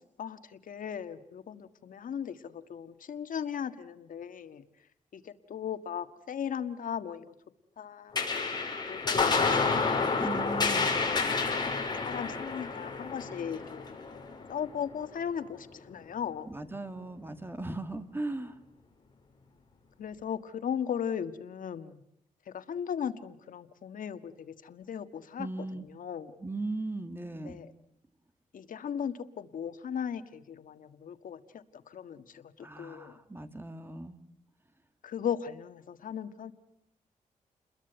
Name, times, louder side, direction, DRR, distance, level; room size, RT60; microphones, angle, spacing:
voice 1, 0.2-4.6 5.1-7.2 7.8-8.5 8.9-11.8 12.0-13.9 14.5-16.5 20.0-22.0 22.5-26.4 27.3-27.7 28.5-33.2 35.0-36.5, left 8 dB, 75° left, 10 dB, 1.7 m, -38 dB
sound 1, 8.1-14.9, left 4 dB, 30° left, 5.5 m, -29 dB
voice 2, 10.2-10.9 16.5-18.5 25.4-25.9 26.4-27.6 32.6-34.2, right 2 dB, 15° right, 9 dB, 2.2 m, -38 dB
30.0 x 21.5 x 8.0 m, 0.77 s
wide cardioid pair, 130°, 14 cm